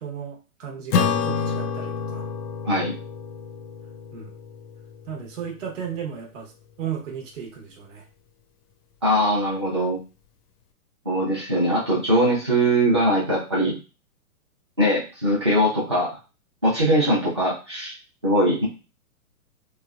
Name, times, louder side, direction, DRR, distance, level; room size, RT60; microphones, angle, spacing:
voice 1, 0.0-2.3 4.1-4.3 5.1-6.5 6.8-8.1 11.1-11.3, right 8 dB, 55° right, 1 dB, 0.9 m, -35 dB
Acoustic guitar / Strum, 0.9-5.6, left 6 dB, 90° left, 0.6 m, -28 dB
voice 2, 9.0-10.0 11.0-13.8 14.8-16.2 16.6-17.9 18.2-18.6, equal, 20° right, -7 dB, 0.4 m, -21 dB
3.2 x 2.0 x 2.3 m, 0.32 s
hypercardioid pair, 165°, 45 cm